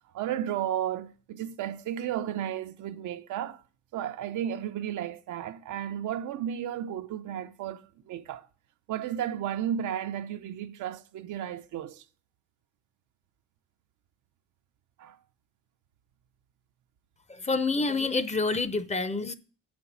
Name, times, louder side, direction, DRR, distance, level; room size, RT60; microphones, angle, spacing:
voice 1, 0.1-3.6 3.9-8.5 8.9-12.0 15.0-15.2, right 10 dB, 80° right, 0.7 m, -33 dB
voice 2, 17.3-19.3, left 3 dB, 20° left, 0.7 m, -28 dB
7.7 x 5.2 x 7.1 m
cardioid pair, 90°, 30 cm